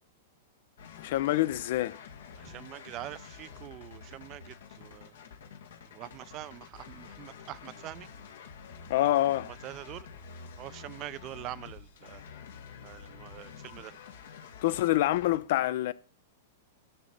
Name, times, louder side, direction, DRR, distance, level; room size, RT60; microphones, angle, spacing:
sound 1, 0.8-15.4, left 6 dB, 80° left, 1.9 m, -48 dB
voice 1, 1.0-2.0 8.9-9.5 14.6-15.9, left 15 dB, 60° left, 0.6 m, -26 dB
voice 2, 2.4-5.1 5.9-8.1 9.5-10.1 10.6-12.2 12.8-14.0, right 15 dB, 35° right, 0.5 m, -44 dB
10.0 x 4.1 x 7.4 m
hypercardioid pair, 130°, 0 cm